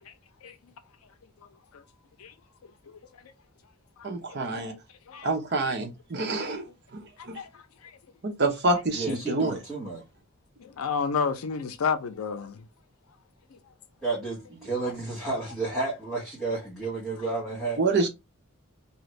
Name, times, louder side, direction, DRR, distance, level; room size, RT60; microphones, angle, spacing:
voice 1, 0.4-0.7 1.7-1.8 2.2-2.3 2.6-3.2 4.0-4.1 4.5-4.8 5.1-5.3 7.2-8.0 10.6-12.6 17.2-17.3, left 5 dB, 85° left, 0.4 m, -32 dB
voice 2, 4.0-4.7 5.2-6.6 7.3-7.4 8.4-9.6 17.8-18.1, right 3 dB, 50° right, 0.8 m, -26 dB
voice 3, 8.9-10.0 14.0-17.8, right 3 dB, ahead, 1.1 m, -31 dB
2.7 x 2.5 x 3.0 m
head